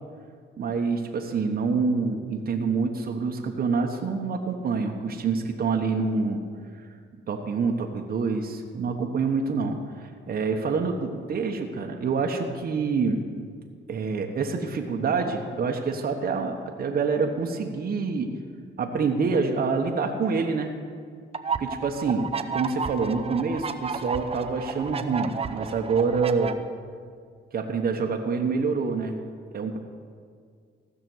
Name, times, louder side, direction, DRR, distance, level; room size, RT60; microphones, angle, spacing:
voice 1, 0.6-6.4 7.3-13.2 13.9-18.3 18.8-20.7 21.6-26.5 27.5-29.1 29.5-29.8, right 4 dB, 50° right, 2 dB, 1.1 m, -26 dB
sound 1, 21.3-26.5, right 5 dB, 30° right, 0.7 m, -32 dB
15.5 x 6.0 x 7.8 m, 2.1 s
cardioid pair, 90°, 20 cm